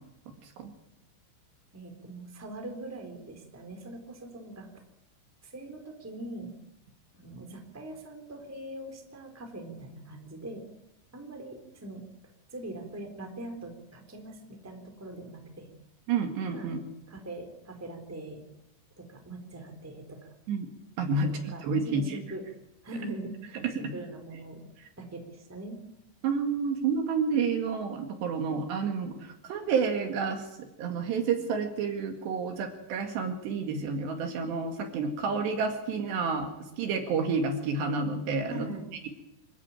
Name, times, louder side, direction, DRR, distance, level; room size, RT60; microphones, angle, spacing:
voice 1, 1.7-4.7 5.4-6.5 7.1-10.6 11.1-12.0 12.5-15.7 16.5-16.8 17.1-18.4 19.0-20.3 21.1-22.4 22.8-24.6 25.0-25.8 38.5-38.9, right 2 dB, 5° right, 4 dB, 2.8 m, -42 dB
voice 2, 16.1-16.8 20.5-20.7 21.0-21.3 21.6-22.2 26.2-30.4 30.8-36.5 36.8-38.7, right 5 dB, 65° right, 5 dB, 3.8 m, -29 dB
26.5 x 14.0 x 9.0 m, 0.89 s
omnidirectional pair, 5.7 m